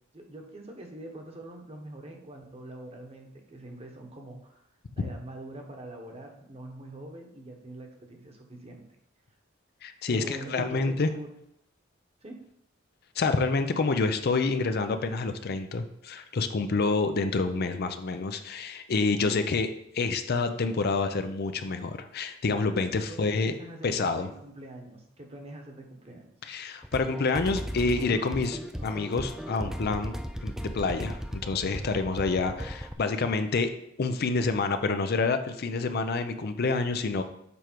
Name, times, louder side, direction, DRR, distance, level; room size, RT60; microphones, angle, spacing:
voice 1, 0.1-4.6 5.0-8.8 10.1-11.3 12.2-12.4 23.1-26.3, right 1 dB, 30° right, 2 dB, 1.1 m, -43 dB
voice 2, 9.8-11.1 13.2-23.5 23.8-24.3 26.4-30.1 30.4-33.7 34.0-37.2, left 3 dB, 50° left, 8 dB, 0.5 m, -28 dB
sound 1, 26.8-32.9, equal, ahead, 0.4 m, -36 dB
7.0 x 4.6 x 4.5 m, 0.74 s
head